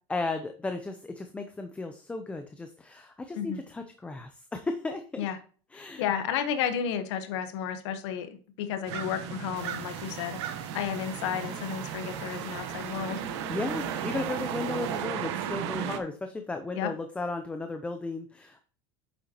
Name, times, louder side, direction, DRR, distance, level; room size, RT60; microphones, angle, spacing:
voice 1, 0.1-5.3 5.7-6.1 13.5-18.6, left 3 dB, 10° left, 6 dB, 0.6 m, -35 dB
voice 2, 5.7-8.3 8.6-10.4 10.7-13.2 16.7-16.9, left 8 dB, 85° left, 8 dB, 1.2 m, -32 dB
sound 1, 8.9-16.0, right 9 dB, 80° right, 1.2 m, -35 dB
sound 2, 9.6-15.0, right 5 dB, 50° right, 2.6 m, -46 dB
9.2 x 7.1 x 2.9 m, 0.40 s
cardioid pair, 155°, 14 cm